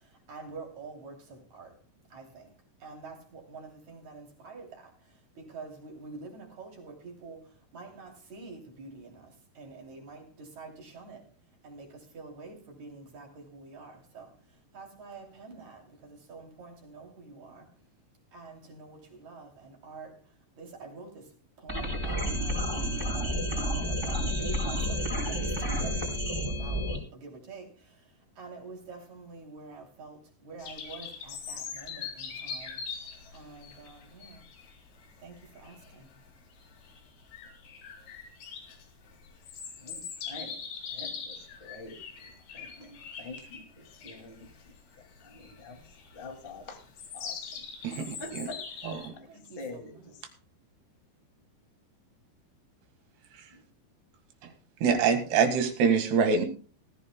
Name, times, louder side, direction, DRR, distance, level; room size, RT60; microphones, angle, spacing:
voice 1, 0.3-1.7 2.1-2.5 2.8-4.9 5.4-7.4 7.7-9.3 9.6-11.3 11.6-14.3 14.7-17.7 18.3-20.2 20.6-21.3 21.6-27.7 28.4-32.8 33.3-34.4 35.2-36.1 49.3-50.2, right 4 dB, 45° right, 2 dB, 3.9 m, -47 dB
sound 1, 21.7-27.0, equal, 5° right, 3.5 m, -30 dB
sound 2, 30.6-49.1, left 6 dB, 70° left, 4.4 m, -42 dB
voice 2, 39.8-40.6 41.0-41.3 41.6-42.0 42.5-42.9 43.2-43.6 44.0-44.5 45.3-45.8 46.1-46.8 47.1-47.3 48.2-48.6 49.2-49.3 49.6-50.1, left 2 dB, 25° left, 3 dB, 1.3 m, -44 dB
voice 3, 47.8-48.5 48.8-49.2 54.8-56.5, right 6 dB, 75° right, 7 dB, 3.8 m, -25 dB
20.5 x 15.0 x 2.2 m, 0.37 s
omnidirectional pair, 4.8 m